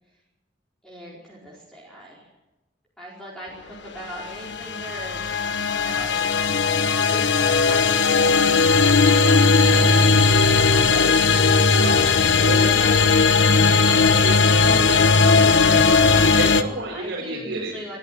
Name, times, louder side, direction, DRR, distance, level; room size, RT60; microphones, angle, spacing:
voice 1, 0.8-2.3 3.0-6.4 6.9-8.3 8.8-11.2 12.2-13.4 15.8-18.0, equal, 5° left, -6 dB, 4.9 m, -39 dB
sound 1, 4.4-16.6, left 4 dB, 75° left, 1.3 m, -17 dB
voice 2, 11.8-12.7 13.9-17.8, right 2 dB, 90° right, -3 dB, 4.5 m, -31 dB
22.5 x 13.5 x 9.1 m, 1.0 s
head